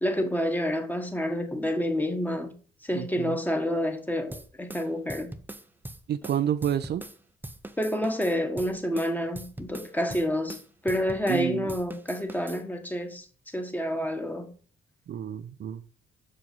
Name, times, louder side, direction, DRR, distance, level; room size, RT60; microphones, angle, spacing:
voice 1, 0.0-5.4 7.8-14.5, equal, 10° left, 1.3 m, -29 dB
voice 2, 2.9-3.4 6.1-7.0 11.3-11.7 15.1-15.8, right 10 dB, 55° right, 0.5 m, -29 dB
sound 1, 4.3-7.2 7.4-11.4 11.7-12.6, right 1 dB, 10° right, 0.7 m, -42 dB
5.8 x 5.0 x 5.3 m
cardioid pair, 90°, 20 cm